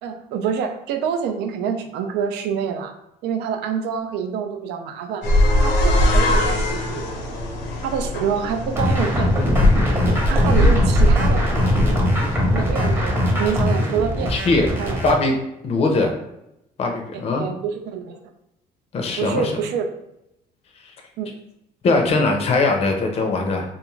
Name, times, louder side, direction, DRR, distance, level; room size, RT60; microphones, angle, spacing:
voice 1, 0.0-2.9 3.2-5.3 5.6-7.0 7.8-9.3 10.2-11.5 12.5-14.3 14.8-15.0 17.1-18.2 19.2-19.9 21.2-21.3, right 7 dB, 85° right, 6 dB, 0.4 m, -26 dB
sound 1, 5.2-13.0, left 1 dB, 85° left, 0.7 m, -20 dB
sound 2, 8.8-15.2, left 1 dB, 15° right, 0.7 m, -21 dB
voice 2, 14.3-14.7 15.0-15.3 15.6-16.1 16.8-17.5 18.9-19.5 21.8-23.6, left 3 dB, 35° left, 2 dB, 0.5 m, -20 dB
2.4 x 2.3 x 3.0 m, 0.84 s
cardioid pair, 110°, 17 cm